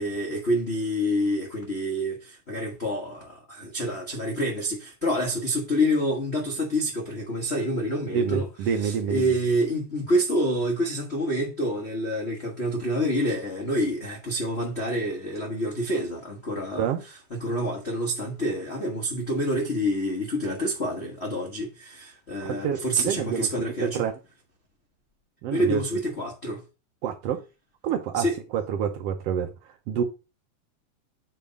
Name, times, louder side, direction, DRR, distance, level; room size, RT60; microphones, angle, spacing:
voice 1, 0.0-8.5 8.8-16.9 17.3-24.1 25.5-26.6 28.1-28.4, equal, 80° left, 0.5 m, -27 dB
voice 2, 8.1-9.3 16.8-17.0 22.5-24.2 25.4-26.0 27.0-27.4 27.8-28.3 28.5-30.0, right 8 dB, 85° right, 1.4 m, -28 dB
8.4 x 3.4 x 5.1 m
omnidirectional pair, 3.6 m